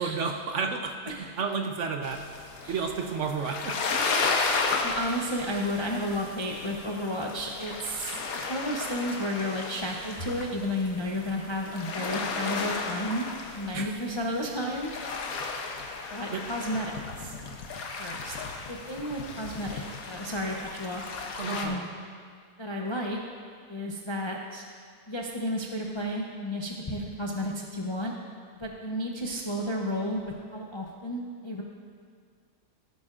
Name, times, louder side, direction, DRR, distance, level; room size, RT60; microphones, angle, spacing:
voice 1, 0.0-2.2 2.7-3.8 13.7-14.0 16.3-16.4 21.4-21.8, right 5 dB, 60° right, 4 dB, 0.9 m, -31 dB
sound 1, 2.0-21.7, left 4 dB, 75° left, 1.3 m, -34 dB
voice 2, 4.8-8.2 8.5-13.3 13.5-14.9 16.1-17.3 18.0-18.4 18.7-21.0 21.5-21.9 22.6-23.2 23.7-24.6 25.1-28.1 28.6-30.2 30.5-31.6, equal, 35° left, -1 dB, 0.4 m, -32 dB
15.5 x 9.3 x 2.5 m, 2.1 s
omnidirectional pair, 1.6 m